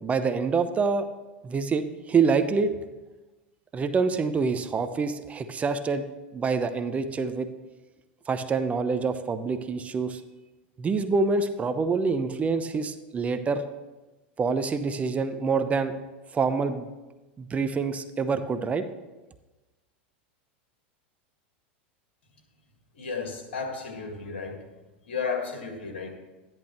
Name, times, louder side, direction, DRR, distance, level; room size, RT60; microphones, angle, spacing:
voice 1, 0.0-1.1 1.4-2.7 3.7-6.1 6.3-7.5 8.3-10.2 10.8-13.6 14.4-16.0 16.3-16.9 17.4-18.8, right 4 dB, 25° right, 10 dB, 0.7 m, -26 dB
voice 2, 23.0-24.6 25.1-26.2, left 5 dB, 90° left, 2 dB, 1.9 m, -33 dB
13.5 x 10.5 x 3.0 m, 1.1 s
hypercardioid pair, 110°, 6 cm